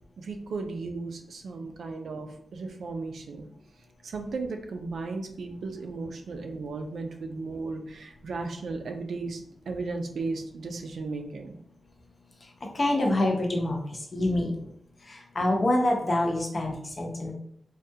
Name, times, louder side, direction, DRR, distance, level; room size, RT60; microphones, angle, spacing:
voice 1, 0.2-3.5 4.0-11.6, right 3 dB, 85° right, 4 dB, 0.4 m, -35 dB
voice 2, 12.7-13.8 14.1-14.5 15.4-17.3, left 1 dB, 35° left, 1 dB, 0.6 m, -25 dB
3.5 x 2.3 x 2.7 m, 0.66 s
wide cardioid pair, 155°, 0 cm